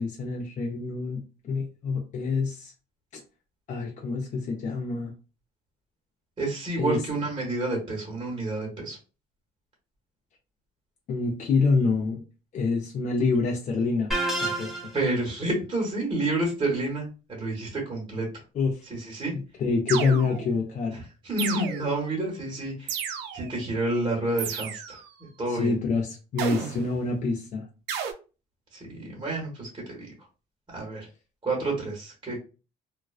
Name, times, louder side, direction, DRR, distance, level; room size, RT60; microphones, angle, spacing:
voice 1, 0.0-2.7 3.7-5.1 6.8-7.0 11.1-12.2 12.5-14.1 14.4-14.9 18.6-18.8 19.6-21.0 25.5-27.6, left 4 dB, 45° left, 0 dB, 0.5 m, -26 dB
voice 2, 6.4-9.0 14.9-18.3 18.9-19.3 20.9-25.7 28.7-30.1 30.7-31.1 31.4-32.5, right 2 dB, 30° right, -3 dB, 1.0 m, -29 dB
sound 1, 14.1-15.1, right 2 dB, ahead, 0.7 m, -28 dB
sound 2, 19.9-20.6 21.4-22.1 22.9-23.6 24.4-25.1 26.4-27.0 27.9-28.1, right 7 dB, 85° right, 0.4 m, -33 dB
2.4 x 2.2 x 2.3 m, 0.33 s
cardioid pair, 110°, 17 cm